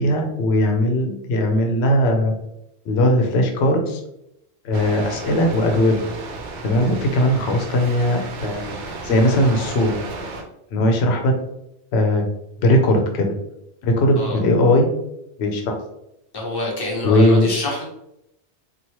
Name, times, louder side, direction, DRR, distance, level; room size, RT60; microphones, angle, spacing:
voice 1, 0.0-2.3 2.9-4.0 4.6-6.0 6.6-8.8 9.0-9.9 10.7-11.3 11.9-12.2 12.6-13.3 13.8-14.9 15.4-15.7 17.0-17.5, left 1 dB, 70° left, 3 dB, 0.9 m, -18 dB
sound 1, 4.7-10.4, right 3 dB, 85° right, 0.9 m, -33 dB
voice 2, 16.3-17.8, left 2 dB, 25° left, -2 dB, 0.7 m, -26 dB
3.0 x 2.4 x 2.8 m, 0.81 s
omnidirectional pair, 1.1 m